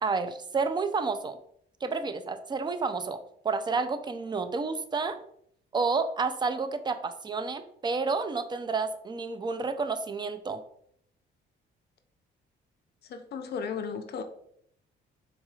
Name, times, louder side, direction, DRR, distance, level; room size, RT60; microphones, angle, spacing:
voice 1, 0.0-1.4 1.8-3.2 3.4-5.2 5.7-10.6, right 4 dB, 20° right, 9 dB, 0.3 m, -30 dB
voice 2, 13.0-14.2, left 6 dB, 55° left, 7 dB, 0.4 m, -35 dB
3.9 x 2.9 x 2.3 m, 0.69 s
cardioid pair, 90°, 20 cm